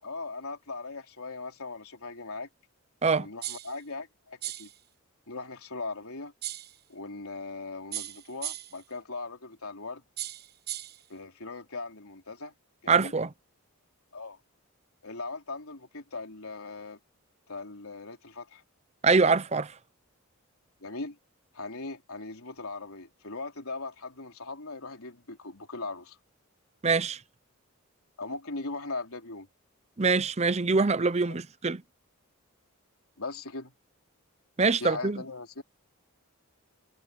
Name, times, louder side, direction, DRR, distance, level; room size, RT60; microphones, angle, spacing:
voice 1, 0.0-2.5 3.2-4.7 5.3-6.3 6.9-10.0 11.1-12.5 12.8-13.1 14.1-14.4 15.0-17.0 17.5-18.6 20.8-21.2 21.5-26.2 28.2-29.5 31.2-31.4 33.2-33.7 34.8-35.6, left 3 dB, 75° left, 3.8 m, -39 dB
sound 1, 3.4-3.8 4.4-4.8 6.4-6.8 7.9-8.8 10.2-11.0, right 14 dB, 45° right, 1.2 m, -37 dB
voice 2, 12.9-13.3 19.0-19.7 26.8-27.2 30.0-31.8 34.6-35.2, right 4 dB, 30° right, 0.6 m, -24 dB
head